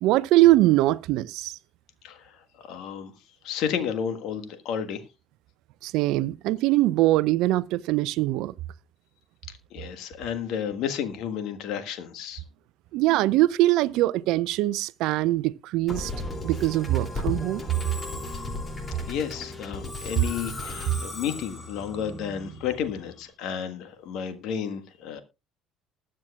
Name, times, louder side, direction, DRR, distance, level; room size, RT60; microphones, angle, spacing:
voice 1, 0.0-1.6 5.8-8.5 12.9-16.1 16.4-17.6, right 16 dB, 60° right, 0.5 m, -22 dB
voice 2, 2.0-3.1 3.4-5.0 9.5-12.4 19.1-25.2, left 8 dB, 60° left, 1.5 m, -32 dB
Musical instrument, 15.9-23.2, left 2 dB, 25° left, 2.9 m, -35 dB
20.5 x 7.5 x 2.4 m
figure-of-eight pair, 55°, 0 cm